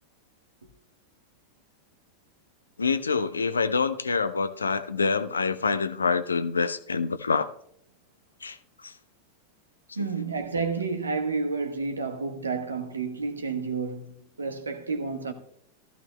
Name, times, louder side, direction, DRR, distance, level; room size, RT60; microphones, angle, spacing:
voice 1, 2.8-7.5 8.4-8.9 10.0-10.1, left 4 dB, 75° left, 0.6 m, -26 dB
voice 2, 10.0-14.1 14.4-15.3, right 4 dB, 75° right, 1.1 m, -30 dB
15.0 x 13.5 x 2.2 m
figure-of-eight pair, 90°, 0 cm